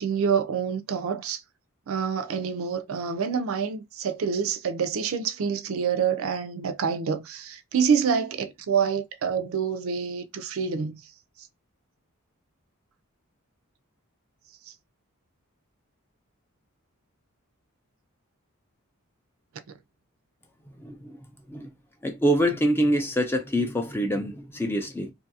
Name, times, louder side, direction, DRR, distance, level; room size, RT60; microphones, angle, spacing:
voice 1, 0.0-1.4 1.9-11.0, right 6 dB, 70° right, 0.4 m, -27 dB
voice 2, 20.8-21.2 21.5-21.7 22.0-25.1, equal, 10° left, 0.4 m, -25 dB
2.6 x 2.4 x 2.6 m
head